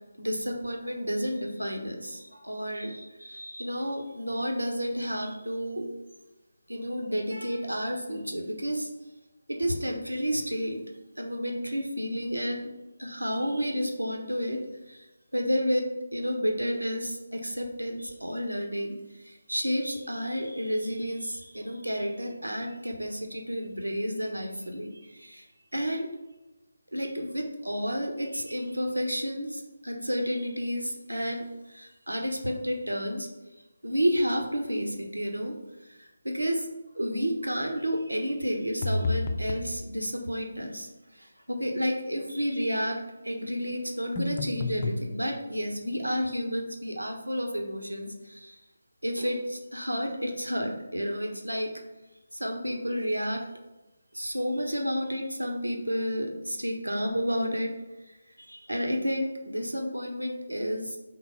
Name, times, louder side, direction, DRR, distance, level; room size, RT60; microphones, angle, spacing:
voice 1, 0.2-5.9 6.7-8.9 9.5-10.8 11.2-12.7 13.0-14.6 14.9-15.1 15.3-25.5 25.7-26.1 26.9-33.3 33.8-35.6 35.8-36.7 36.9-48.6 49.0-51.7 52.3-53.4 54.1-57.7 58.1-61.0, equal, 85° right, 2 dB, 1.1 m, -31 dB
sound 1, 38.8-39.7 44.1-45.0, left 2 dB, 30° left, 0.6 m, -29 dB
4.5 x 3.9 x 5.6 m, 1.0 s
figure-of-eight pair, 155°, 0 cm